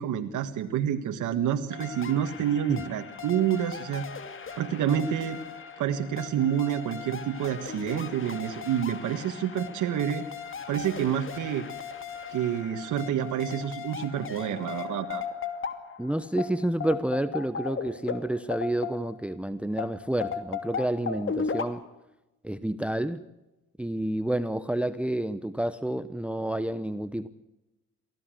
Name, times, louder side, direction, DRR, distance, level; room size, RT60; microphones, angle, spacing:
voice 1, 0.0-4.1 4.6-5.4 5.8-10.2 10.7-11.7 12.3-15.2, right 9 dB, 80° right, 5 dB, 1.7 m, -28 dB
sound 1, 1.7-19.3 19.8-21.7, left 6 dB, 40° left, 2.6 m, -37 dB
voice 2, 16.0-21.8 22.4-23.2 23.8-27.3, right 1 dB, 5° right, 14 dB, 0.9 m, -29 dB
23.5 x 16.0 x 7.7 m, 0.97 s
cardioid pair, 90°, 30 cm